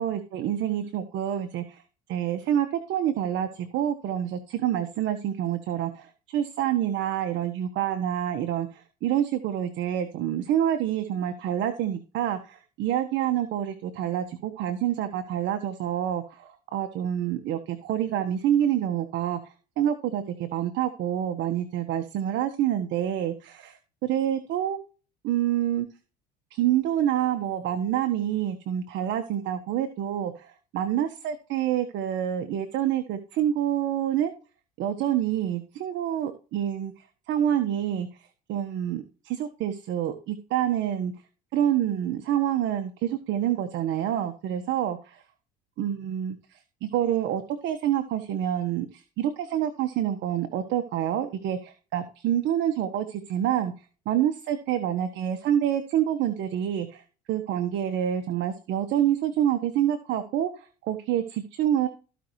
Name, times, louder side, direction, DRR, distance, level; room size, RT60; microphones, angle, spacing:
voice 1, 0.0-1.8 2.1-19.4 19.8-24.8 25.2-25.9 26.5-34.3 34.8-36.9 37.3-38.1 38.5-41.1 41.5-45.0 45.8-53.7 54.0-57.0 57.3-61.9, right 10 dB, 60° right, 7 dB, 1.4 m, -27 dB
15.0 x 5.6 x 3.2 m, 0.33 s
supercardioid pair, 95°, 21 cm